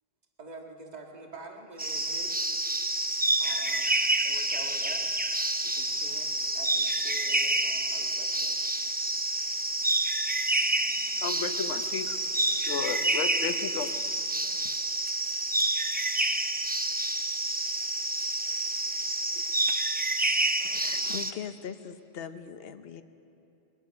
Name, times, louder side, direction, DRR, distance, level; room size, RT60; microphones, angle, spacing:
voice 1, 0.4-2.7 3.4-5.1 5.6-8.6 19.0-19.5, right 3 dB, 35° right, 1 dB, 1.8 m, -47 dB
sound 1, 1.8-21.3, right 2 dB, 10° right, 0.4 m, -28 dB
voice 2, 10.7-14.8, left 6 dB, 75° left, 9 dB, 1.3 m, -35 dB
voice 3, 20.6-23.0, left 8 dB, 55° left, 10 dB, 1.0 m, -40 dB
22.5 x 20.0 x 5.8 m, 2.7 s
omnidirectional pair, 1.3 m